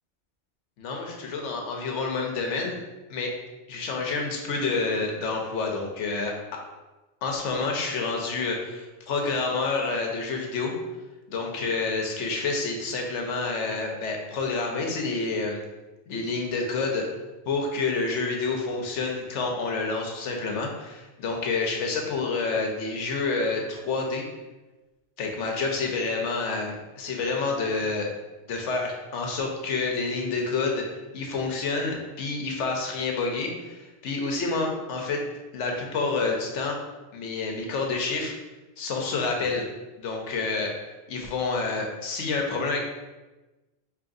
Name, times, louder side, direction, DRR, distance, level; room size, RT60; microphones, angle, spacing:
voice 1, 0.8-2.8 3.1-3.3 3.7-6.3 7.2-10.7 11.3-15.6 16.1-17.1 17.5-24.2 25.2-28.1 28.5-30.8 31.1-35.2 35.5-36.8 37.1-38.4 38.8-39.7 40.0-40.7 41.1-42.8, left 3 dB, 90° left, 1 dB, 1.0 m, -28 dB
4.8 x 2.9 x 2.6 m, 1.1 s
omnidirectional pair, 1.2 m